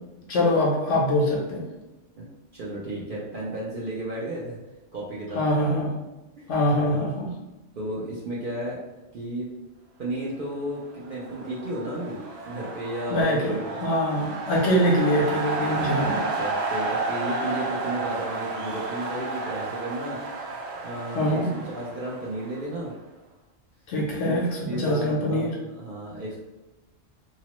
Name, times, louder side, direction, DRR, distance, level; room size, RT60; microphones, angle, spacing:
voice 1, 0.3-1.6 5.3-5.9 6.5-7.3 13.1-13.5 13.8-16.2 21.1-21.5 23.9-25.5, equal, 75° left, -2 dB, 1.0 m, -23 dB
voice 2, 2.5-4.6 4.9-5.4 5.7-5.8 6.4-7.0 7.8-8.8 9.1-9.5 10.0-13.8 16.1-21.4 21.7-22.9 24.2-26.4, right 1 dB, 55° right, -5 dB, 0.6 m, -33 dB
sound 1, 10.9-22.9, right 3 dB, 85° right, 1.0 m, -32 dB
2.8 x 2.0 x 2.9 m, 1.0 s
omnidirectional pair, 1.3 m